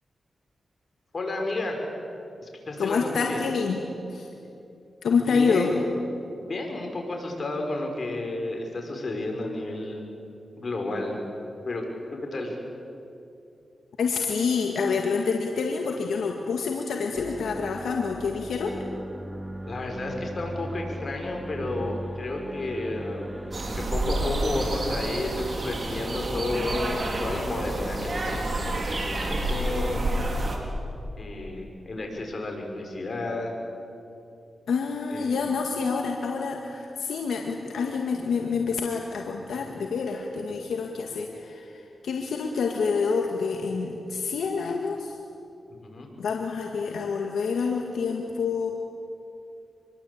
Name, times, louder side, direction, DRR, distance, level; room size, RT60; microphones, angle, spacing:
voice 1, 1.1-1.8 2.4-3.4 5.3-5.8 6.4-10.0 10.6-11.2 11.6-11.8 12.1-12.6 19.7-23.3 23.6-30.0 31.2-33.5 35.1-35.4 45.7-46.1, left 2 dB, 55° left, 2 dB, 6.4 m, -32 dB
voice 2, 2.8-3.8 4.1-4.3 5.0-5.7 14.0-18.8 34.7-45.2 46.2-48.7, left 5 dB, 90° left, 2 dB, 1.9 m, -27 dB
sound 1, 17.2-27.7, right 1 dB, 5° right, 2.6 m, -39 dB
sound 2, 23.5-30.6, right 1 dB, 50° right, 4.8 m, -29 dB
26.5 x 22.5 x 8.8 m, 2.6 s
cardioid pair, 50°, 0 cm